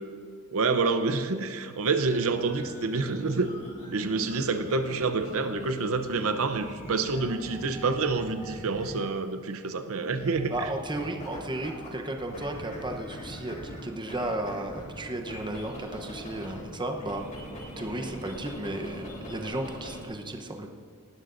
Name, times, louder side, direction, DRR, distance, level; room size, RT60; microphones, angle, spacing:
voice 1, 0.5-3.5 3.9-10.7, right 4 dB, 70° right, 8 dB, 0.7 m, -28 dB
sound 1, 2.0-9.2 10.2-11.9 12.2-16.6 17.0-20.1, equal, 35° left, 3.5 m, -42 dB
voice 2, 10.5-17.2 17.8-20.7, right 1 dB, 20° right, 4 dB, 0.9 m, -34 dB
19.0 x 12.5 x 2.6 m, 2.2 s
head